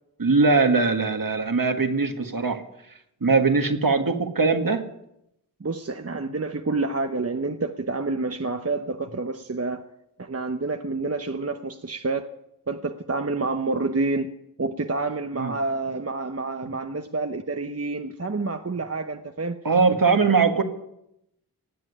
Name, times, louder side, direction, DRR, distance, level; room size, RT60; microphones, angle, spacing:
voice 1, 0.2-2.6 3.2-4.8 15.3-15.6 19.6-20.6, right 4 dB, 55° right, 7 dB, 1.8 m, -21 dB
voice 2, 5.6-9.8 10.2-12.2 12.7-14.3 14.6-19.6, right 3 dB, 40° right, 7 dB, 0.9 m, -28 dB
18.0 x 7.7 x 9.8 m, 0.83 s
cardioid pair, 40°, 39 cm